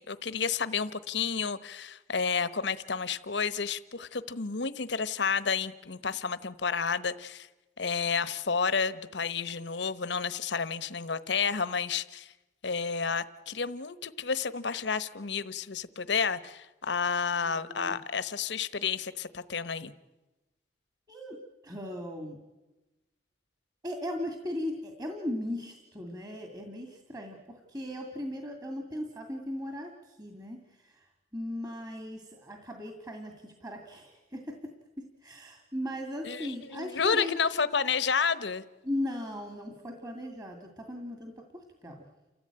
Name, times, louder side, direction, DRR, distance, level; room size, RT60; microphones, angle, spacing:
voice 1, 0.0-7.5 7.8-12.3 12.6-19.9 36.2-38.6, left 5 dB, 70° left, 15 dB, 1.0 m, -31 dB
voice 2, 17.5-18.0 21.1-21.4 21.6-22.4 23.8-27.4 27.7-30.6 30.8-30.9 31.3-34.4 35.2-37.4 38.8-41.3 41.8-42.0, left 1 dB, 20° right, 3 dB, 2.2 m, -37 dB
29.5 x 14.5 x 8.9 m, 1.1 s
head